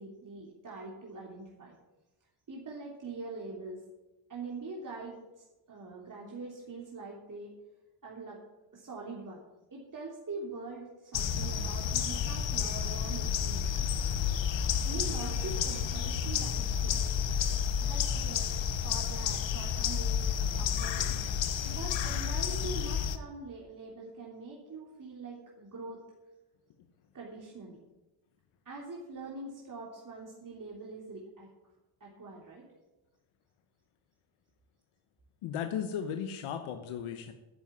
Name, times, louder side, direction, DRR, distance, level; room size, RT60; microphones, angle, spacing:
voice 1, 0.0-1.7 2.5-3.8 4.3-7.5 8.0-8.4 8.7-9.4 9.7-13.9 14.8-17.0 17.8-20.3 20.5-21.2 21.6-26.0 27.1-27.8 28.6-31.5 32.0-32.7, right 3 dB, 40° right, -3 dB, 3.2 m, -43 dB
sound 1, 11.1-23.2, left 7 dB, 65° left, 1.3 m, -31 dB
voice 2, 35.4-37.3, left 8 dB, 90° left, 7 dB, 1.1 m, -35 dB
10.0 x 7.4 x 9.5 m, 1.0 s
cardioid pair, 75°, 49 cm